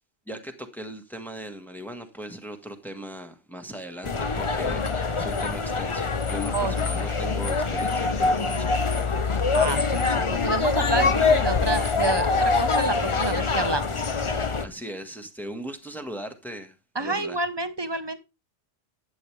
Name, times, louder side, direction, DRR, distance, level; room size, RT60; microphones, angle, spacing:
voice 1, 0.3-9.3 14.6-17.4, right 1 dB, ahead, 1.5 m, -39 dB
sound 1, 4.0-14.7, left 4 dB, 30° left, 0.8 m, -24 dB
voice 2, 9.5-14.1 16.9-18.2, right 2 dB, 25° right, 1.0 m, -29 dB
12.0 x 8.8 x 3.3 m
omnidirectional pair, 1.2 m